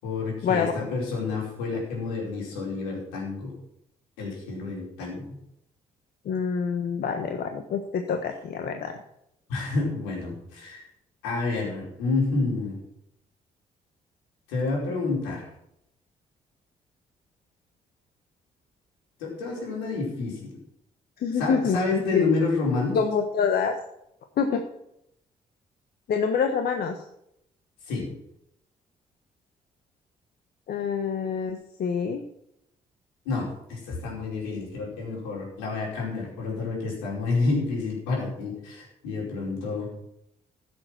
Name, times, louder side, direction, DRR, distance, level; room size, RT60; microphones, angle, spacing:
voice 1, 0.0-3.5 4.2-5.2 9.5-10.8 11.2-12.8 14.5-15.5 19.2-20.5 21.4-23.0 27.8-28.1 33.2-39.9, left 3 dB, 90° left, -3 dB, 5.0 m, -29 dB
voice 2, 6.2-9.0 21.2-22.3 22.9-23.7 24.4-24.6 26.1-27.0 30.7-32.2, left 6 dB, 65° left, 5 dB, 1.4 m, -26 dB
15.0 x 7.7 x 6.1 m, 0.77 s
hypercardioid pair, 50°, 17 cm